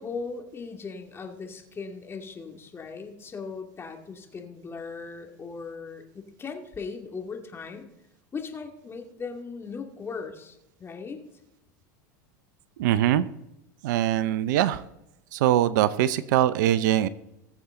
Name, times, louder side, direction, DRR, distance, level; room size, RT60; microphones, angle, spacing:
voice 1, 0.0-7.9 8.3-11.2, left 4 dB, 25° left, 3 dB, 2.3 m, -38 dB
voice 2, 12.8-13.3 13.8-14.8 15.3-17.1, right 12 dB, 70° right, 16 dB, 0.6 m, -22 dB
20.5 x 7.1 x 3.8 m, 0.86 s
hypercardioid pair, 95°, 10 cm